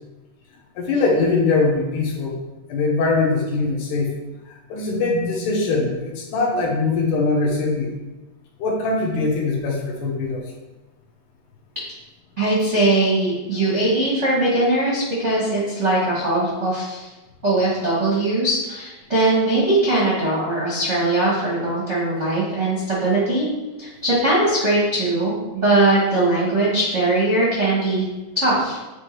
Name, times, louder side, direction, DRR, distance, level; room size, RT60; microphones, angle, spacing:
voice 1, 0.8-2.4 2.7-4.1 4.5-7.9 8.6-10.4, left 3 dB, 75° left, -1 dB, 2.5 m, -22 dB
voice 2, 12.4-17.1 17.4-23.5 23.8-28.0 28.3-28.8, right 2 dB, 50° right, -8 dB, 0.8 m, -20 dB
8.2 x 3.4 x 4.4 m, 1.1 s
omnidirectional pair, 3.8 m